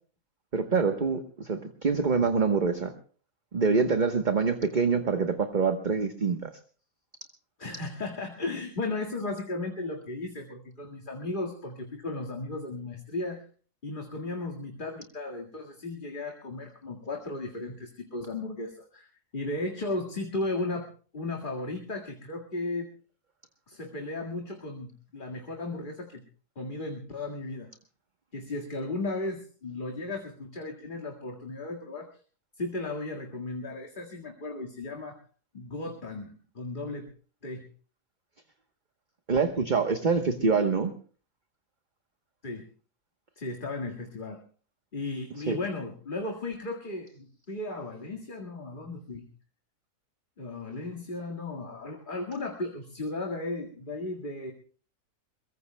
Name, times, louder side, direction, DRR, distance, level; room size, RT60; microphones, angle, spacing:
voice 1, 0.5-2.9 3.5-6.5 39.3-40.9 45.5-45.6, right 5 dB, 35° right, 7 dB, 1.2 m, -25 dB
voice 2, 7.6-13.4 13.8-22.9 23.7-26.2 26.6-27.7 28.3-32.1 32.6-35.2 35.5-37.1 37.4-37.6 42.4-42.6 43.4-44.4 44.9-49.3 50.4-54.5, left 2 dB, 35° left, 2 dB, 2.1 m, -35 dB
23.5 x 22.0 x 2.3 m, 0.41 s
omnidirectional pair, 1.5 m